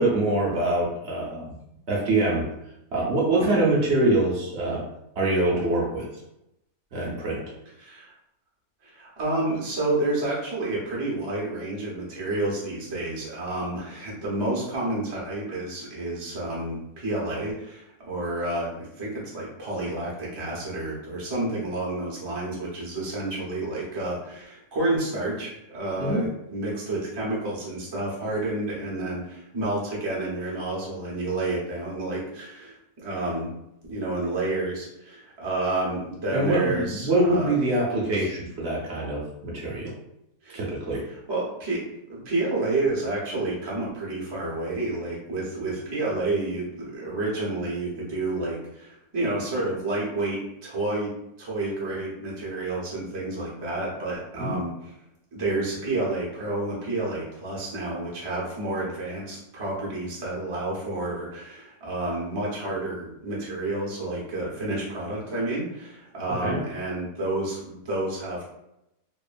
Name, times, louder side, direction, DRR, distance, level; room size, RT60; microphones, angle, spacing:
voice 1, 0.0-1.5 1.9-2.5 2.9-4.8 5.2-6.1 6.9-7.4 26.0-26.2 36.3-39.9 40.5-41.1 54.4-54.6 66.3-66.6, right 2 dB, 60° right, -4 dB, 0.7 m, -24 dB
voice 2, 7.8-8.1 8.8-33.5 33.9-37.5 38.1-38.3 40.4-40.6 41.3-51.1 51.4-54.7 55.3-68.5, right 2 dB, 40° right, -5 dB, 0.3 m, -30 dB
2.8 x 2.2 x 2.4 m, 0.84 s
omnidirectional pair, 1.7 m